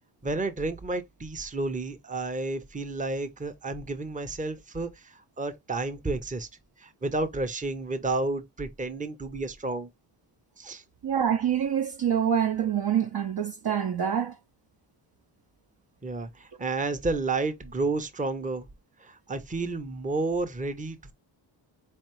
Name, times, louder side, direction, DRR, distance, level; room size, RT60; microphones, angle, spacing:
voice 1, 0.2-6.5 6.8-9.9 10.6-10.8 16.0-18.7 19.0-21.1, right 3 dB, 15° right, 0.8 m, -31 dB
voice 2, 11.0-14.4, right 8 dB, 50° right, 0.8 m, -26 dB
4.0 x 3.2 x 3.0 m
cardioid pair, 50°, 47 cm